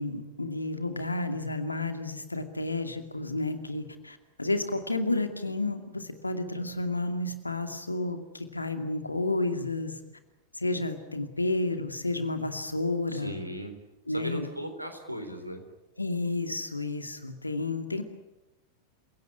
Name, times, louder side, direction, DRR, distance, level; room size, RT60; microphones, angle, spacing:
voice 1, 0.0-10.0 10.5-13.3 14.1-14.4 16.0-18.0, left 2 dB, 85° left, 8 dB, 2.4 m, -31 dB
voice 2, 13.1-13.7 14.1-15.6, equal, 90° right, 6 dB, 3.8 m, -37 dB
27.5 x 17.5 x 9.8 m, 0.97 s
figure-of-eight pair, 90°, 0 cm